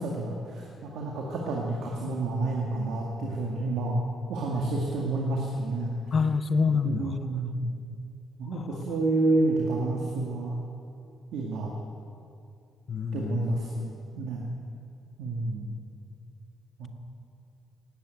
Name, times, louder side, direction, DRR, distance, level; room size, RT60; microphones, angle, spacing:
voice 1, 0.0-4.0 4.3-6.1 6.8-7.7 8.4-10.6 11.3-11.7 13.1-14.5 15.2-15.7 16.8-16.9, right 2 dB, 85° right, -2 dB, 2.0 m, -29 dB
voice 2, 6.1-7.2 8.5-8.8 12.9-13.6, left 5 dB, 45° left, 12 dB, 0.6 m, -27 dB
19.5 x 9.0 x 8.0 m, 2.5 s
cardioid pair, 90°, 0 cm